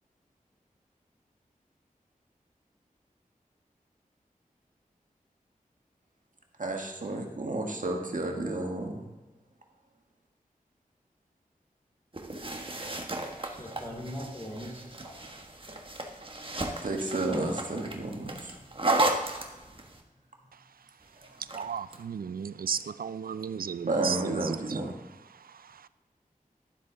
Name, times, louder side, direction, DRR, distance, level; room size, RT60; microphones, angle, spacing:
voice 1, 6.6-9.0 16.8-18.5 23.9-24.9, right 2 dB, 60° right, 1 dB, 1.7 m, -31 dB
sound 1, 12.1-20.0 21.2-22.0, right 2 dB, 35° right, 1.4 m, -34 dB
voice 2, 13.4-15.3 18.6-18.7, equal, 20° left, -2 dB, 3.4 m, -41 dB
voice 3, 21.4-24.8 25.3-25.9, right 7 dB, 80° right, 15 dB, 0.4 m, -35 dB
12.0 x 7.5 x 3.9 m, 1.1 s
wide cardioid pair, 55°, 15 cm